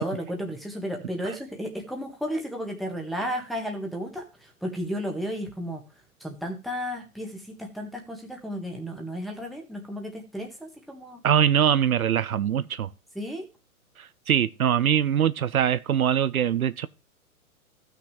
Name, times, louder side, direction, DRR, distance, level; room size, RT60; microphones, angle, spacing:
voice 1, 0.0-5.8 6.2-11.2 13.1-13.4, equal, ahead, 1.6 m, -33 dB
voice 2, 11.2-12.9 14.0-16.9, right 9 dB, 75° right, 0.7 m, -23 dB
15.0 x 6.2 x 3.3 m
figure-of-eight pair, 125°, 43 cm